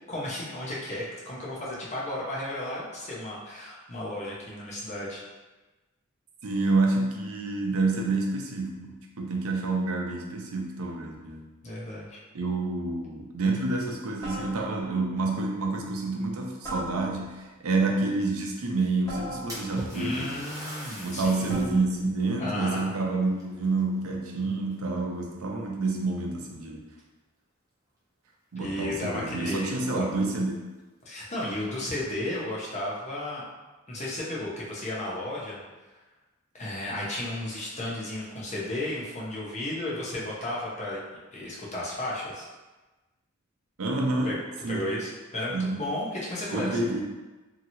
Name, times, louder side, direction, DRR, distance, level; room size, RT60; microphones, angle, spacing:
voice 1, 0.1-5.2 11.6-12.2 19.9-21.7 22.4-22.9 28.6-30.0 31.1-33.4 33.9-35.6 36.5-41.0 41.3-42.5 44.2-44.3 44.7-46.8, left 1 dB, 35° left, -5 dB, 0.7 m, -33 dB
voice 2, 6.4-11.5 12.3-20.4 21.0-26.8 28.5-30.6 43.8-44.9 45.5-45.9 46.5-47.0, right 3 dB, 90° right, 1 dB, 0.5 m, -28 dB
sound 1, 12.4-12.8 14.2-15.0 16.6-17.5 19.1-20.0 21.5-22.1, equal, 20° left, 1.2 m, -40 dB
Splash splatter, 19.5-21.8 22.3-22.4 23.3-24.3 24.7-25.2 26.0-26.1 26.5-26.6 28.8-28.9 29.2-29.3 29.9-30.0 30.4-30.5 31.2-31.8, equal, 15° right, 0.6 m, -41 dB
2.8 x 2.8 x 2.7 m, 1.2 s
head